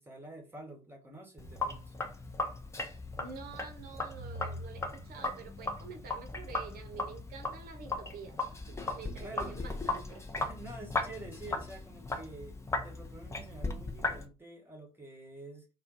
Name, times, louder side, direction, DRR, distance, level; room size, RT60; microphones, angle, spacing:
voice 1, 0.0-1.9 9.2-9.8 10.1-15.7, right 2 dB, 10° right, 1.1 m, -48 dB
Sink (filling or washing), 1.4-14.2, left 3 dB, 15° left, 0.7 m, -37 dB
voice 2, 3.2-8.4 8.7-10.0, right 5 dB, 50° right, 0.8 m, -48 dB
2.5 x 2.2 x 3.8 m
figure-of-eight pair, 55°, 19 cm